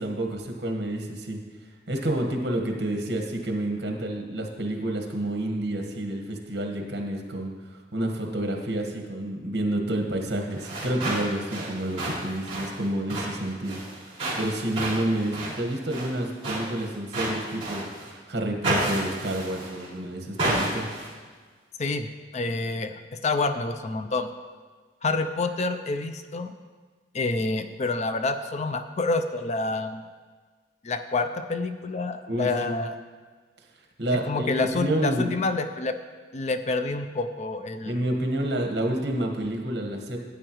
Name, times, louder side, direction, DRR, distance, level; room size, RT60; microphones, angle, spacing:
voice 1, 0.0-1.4 1.9-7.5 7.9-13.8 14.4-17.8 18.3-20.9 32.3-32.8 34.0-35.3 37.8-40.2, right 1 dB, 60° right, 2 dB, 1.5 m, -29 dB
sound 1, 10.5-18.1 18.6-19.9 20.4-21.1, right 1 dB, 35° right, 3.3 m, -31 dB
voice 2, 21.8-24.3 25.0-26.5 27.1-30.0 30.8-32.9 34.1-35.9 36.3-38.0, left 3 dB, 40° left, 9 dB, 0.5 m, -28 dB
13.5 x 8.9 x 3.1 m, 1.5 s
head